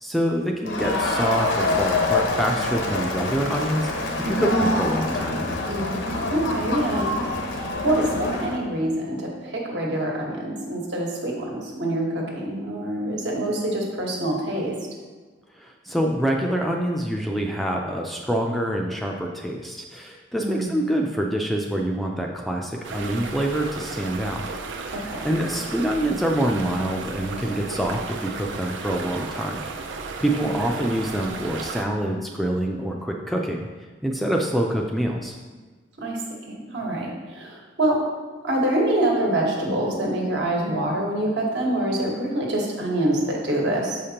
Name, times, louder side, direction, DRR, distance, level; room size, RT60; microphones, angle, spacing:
voice 1, 0.0-5.5 15.5-24.5 25.2-29.6 30.2-33.7 34.0-35.4, right 1 dB, ahead, 0 dB, 0.3 m, -26 dB
Crowd, 0.7-8.6, left 2 dB, 90° left, 0.8 m, -26 dB
voice 2, 4.2-4.7 5.6-5.9 6.3-7.1 7.5-14.7 20.4-20.7 24.9-25.3 36.0-38.0 38.4-44.0, right 1 dB, 70° right, -1 dB, 1.3 m, -25 dB
sound 1, 22.8-31.8, right 4 dB, 85° right, 0.5 m, -34 dB
7.1 x 5.0 x 2.9 m, 1.4 s
head